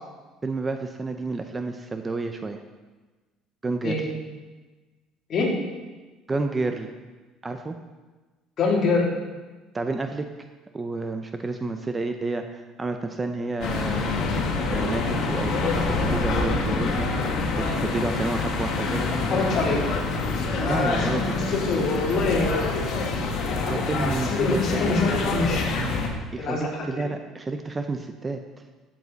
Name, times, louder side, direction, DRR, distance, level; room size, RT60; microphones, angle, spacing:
voice 1, 0.4-2.6 3.6-4.1 6.3-6.9 7.4-7.8 9.7-10.3 10.7-14.2 14.7-19.2 20.7-21.4 23.7-24.9 26.3-28.4, right 3 dB, 20° right, 6 dB, 0.6 m, -30 dB
voice 2, 8.6-9.0 19.3-19.8 20.6-23.0 23.6-25.7 26.4-26.7, left 3 dB, 40° left, -3 dB, 3.1 m, -25 dB
sound 1, 13.6-26.1, left 3 dB, 55° left, 2.0 m, -26 dB
14.5 x 7.4 x 4.1 m, 1.3 s
cardioid pair, 130°, 0 cm